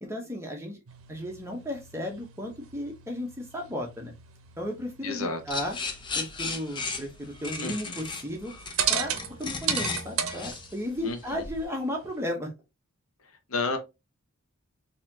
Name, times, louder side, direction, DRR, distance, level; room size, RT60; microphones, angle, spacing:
voice 1, 0.0-0.8 1.1-4.1 4.6-5.8 6.1-8.5 8.9-9.1 9.4-12.5, left 1 dB, 10° right, 0.9 m, -34 dB
sound 1, 0.9-12.3, right 8 dB, 70° right, 0.7 m, -37 dB
voice 2, 5.0-5.6 7.6-8.0 11.0-11.4 13.5-13.8, left 3 dB, 70° left, 0.8 m, -32 dB
sound 2, 5.5-11.6, left 4 dB, 20° left, 0.5 m, -35 dB
4.0 x 2.9 x 2.7 m
head